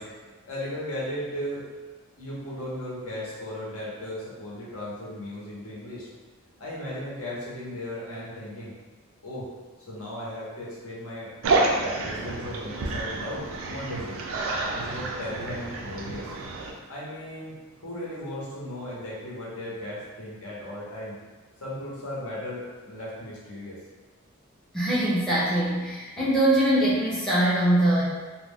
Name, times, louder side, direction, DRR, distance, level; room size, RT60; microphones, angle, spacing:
voice 1, 0.0-1.6 2.2-6.1 6.6-8.7 9.2-9.5 9.8-11.3 12.0-14.2 14.7-16.3 16.9-17.5 17.8-21.2 21.6-23.8, left 1 dB, 75° left, -6 dB, 0.9 m, -36 dB
sound 1, 11.4-16.7, right 3 dB, 65° right, 0.4 m, -29 dB
voice 2, 24.7-28.0, right 1 dB, 5° left, -9 dB, 0.4 m, -22 dB
2.3 x 2.2 x 3.4 m, 1.3 s
head